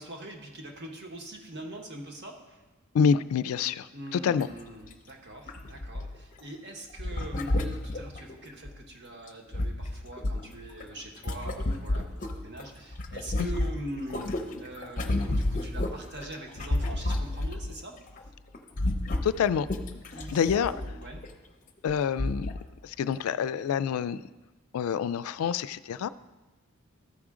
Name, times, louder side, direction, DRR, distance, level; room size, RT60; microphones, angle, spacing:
voice 1, 0.0-2.6 3.9-14.2 14.6-17.9 20.1-21.2, right 1 dB, 55° right, 2 dB, 1.2 m, -43 dB
voice 2, 2.9-3.9 4.1-4.5 13.4-13.5 19.2-19.7 20.3-20.7 21.8-22.5 22.8-24.2 24.7-26.1, left 7 dB, 85° left, 15 dB, 0.3 m, -26 dB
sound 1, 4.4-4.5 4.8-4.9 5.5-6.4 7.0-8.8 9.3-12.7 12.9-17.8 18.1-18.3 18.5-21.3 21.9-22.0 22.2-22.6 23.1-23.2, left 1 dB, 40° left, 0.6 m, -31 dB
13.0 x 5.0 x 3.7 m, 1.2 s
head